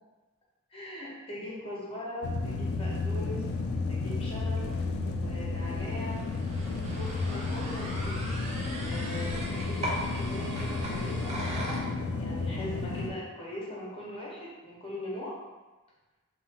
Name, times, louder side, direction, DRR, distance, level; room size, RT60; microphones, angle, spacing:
voice 1, 0.7-3.4 3.9-4.6 5.1-6.2 6.9-8.1 8.9-15.3, left 1 dB, 25° left, -5 dB, 0.7 m, -40 dB
sound 1, 2.2-13.1, left 3 dB, 85° left, 0.3 m, -32 dB
sound 2, 4.1-11.8, right 1 dB, 30° right, 0.4 m, -39 dB
2.9 x 2.1 x 2.7 m, 1.2 s
head